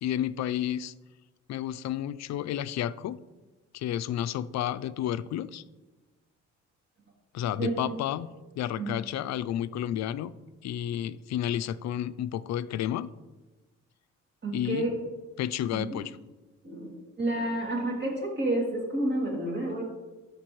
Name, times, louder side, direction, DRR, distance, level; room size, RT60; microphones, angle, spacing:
voice 1, 0.0-0.9 1.5-3.2 3.7-5.6 7.3-8.3 8.6-10.3 10.6-13.1 14.5-14.9 15.4-16.2, left 11 dB, 60° left, 15 dB, 0.4 m, -31 dB
voice 2, 7.6-8.0 8.8-8.9 14.4-14.9 15.7-16.0 16.6-16.9 17.2-19.8, right 1 dB, 35° right, -1 dB, 2.5 m, -30 dB
13.0 x 5.1 x 3.1 m, 1.2 s
cardioid pair, 90°, 30 cm